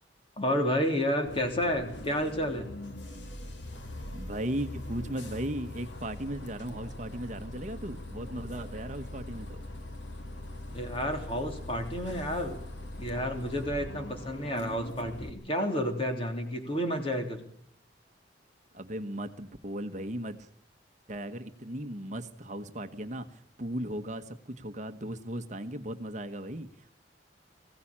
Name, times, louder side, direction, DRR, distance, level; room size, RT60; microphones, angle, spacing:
voice 1, 0.4-2.7 10.7-12.6 13.0-17.4, equal, 30° left, 4 dB, 3.4 m, -30 dB
Bus, 1.3-15.3, left 1 dB, 80° left, 2.3 m, -42 dB
voice 2, 4.1-9.6 18.7-20.5 21.1-26.9, right 1 dB, 40° right, 7 dB, 1.2 m, -37 dB
20.5 x 16.0 x 8.7 m, 0.66 s
head